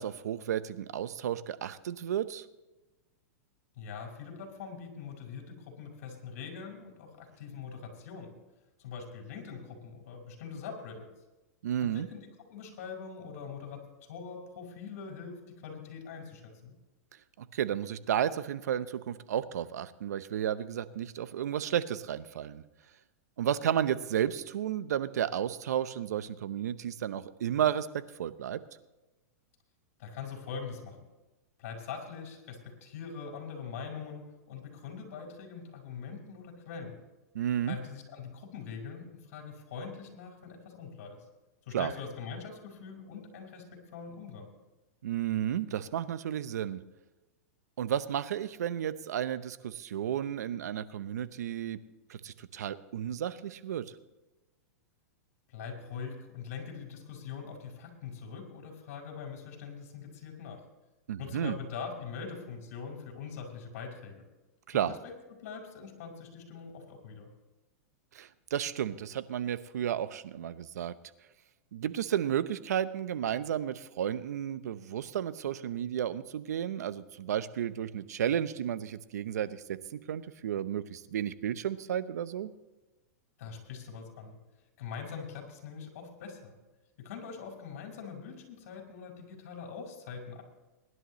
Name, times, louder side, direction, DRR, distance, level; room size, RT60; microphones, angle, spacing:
voice 1, 0.0-2.5 11.6-12.1 17.4-22.6 23.4-27.9 28.2-28.6 37.3-37.8 41.7-41.9 45.0-46.8 47.8-51.8 52.1-53.8 61.1-61.6 64.7-64.9 68.1-70.9 71.7-82.5, right 10 dB, 80° right, 14 dB, 0.8 m, -32 dB
voice 2, 3.8-8.3 8.8-11.1 11.8-13.8 14.1-16.8 30.0-31.0 31.6-37.0 37.7-41.2 41.7-44.5 55.5-60.6 61.2-64.2 64.7-65.0 65.4-67.3 83.4-84.4 84.8-86.6 87.0-90.4, left 6 dB, 60° left, 2 dB, 4.9 m, -43 dB
23.0 x 11.0 x 3.1 m, 1.1 s
hypercardioid pair, 130°, 9 cm